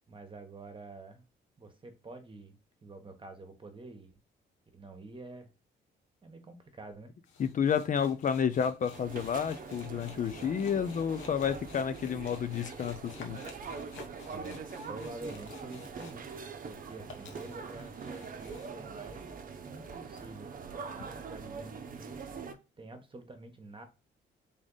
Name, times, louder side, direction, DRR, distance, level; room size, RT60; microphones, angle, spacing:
voice 1, 0.1-1.2 1.6-4.2 4.7-5.5 6.2-7.1 14.3-14.6 14.9-16.3 16.6-19.3 19.7-20.5 20.9-23.9, right 2 dB, 25° right, 1.2 m, -48 dB
sound 1, 7.3-16.7 17.0-18.7, left 4 dB, 85° left, 1.1 m, -51 dB
voice 2, 7.4-13.4, left 7 dB, 40° left, 0.4 m, -30 dB
sound 2, 8.9-22.5, right 5 dB, 45° right, 0.8 m, -43 dB
3.7 x 3.4 x 3.9 m
cardioid pair, 90°, 20 cm